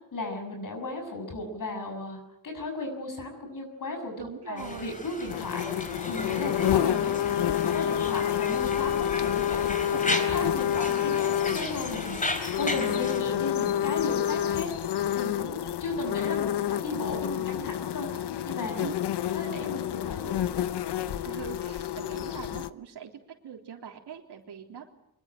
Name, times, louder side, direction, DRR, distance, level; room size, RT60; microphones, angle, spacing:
voice 1, 0.1-4.1 4.5-14.7 15.1-18.1 18.4-18.8 19.3-20.3, left 2 dB, 55° left, 4 dB, 6.9 m, -35 dB
voice 2, 4.2-4.9 9.9-10.0 10.3-10.5 12.7-13.1 18.8-18.9 21.2-23.1 23.4-25.0, right 8 dB, 85° right, 1 dB, 3.7 m, -42 dB
Conversation, 4.6-13.2, left 2 dB, 20° left, 3.6 m, -36 dB
sound 1, 5.3-22.7, left 11 dB, 85° left, 1.0 m, -29 dB
24.5 x 22.5 x 9.2 m, 0.78 s
wide cardioid pair, 175°, 39 cm